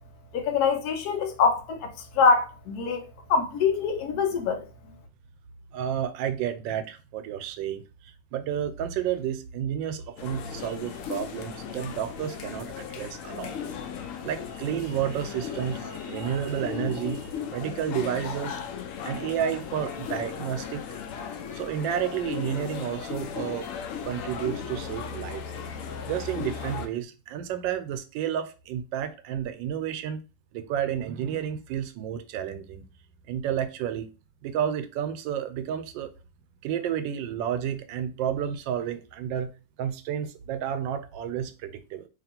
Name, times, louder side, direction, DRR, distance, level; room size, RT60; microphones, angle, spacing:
voice 1, 0.3-4.6, left 5 dB, 65° left, 1.2 m, -24 dB
voice 2, 5.7-13.6 14.2-18.6 19.0-20.8 21.5-23.7 24.0-25.4 26.0-30.2 30.5-32.8 33.3-34.1 34.4-36.1 36.6-39.5 39.8-42.0, right 9 dB, 85° right, 1.3 m, -31 dB
sound 1, 10.2-26.9, left 7 dB, 85° left, 0.7 m, -36 dB
2.9 x 2.8 x 4.2 m
omnidirectional pair, 2.0 m